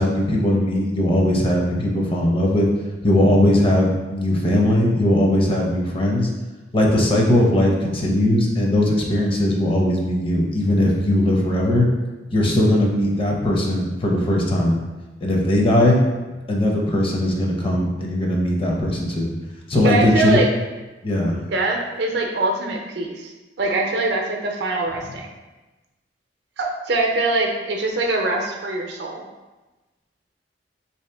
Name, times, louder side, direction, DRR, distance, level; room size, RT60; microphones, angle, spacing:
voice 1, 0.0-2.7 3.0-6.3 6.7-11.9 12.3-14.8 15.2-16.0 16.5-19.3 19.7-20.4 21.0-21.4, left 1 dB, 30° left, -1 dB, 0.6 m, -19 dB
voice 2, 19.8-20.5 21.3-23.3 23.6-25.3 26.6-29.3, right 2 dB, 70° right, 1 dB, 0.6 m, -23 dB
3.5 x 2.8 x 3.4 m, 1.1 s
head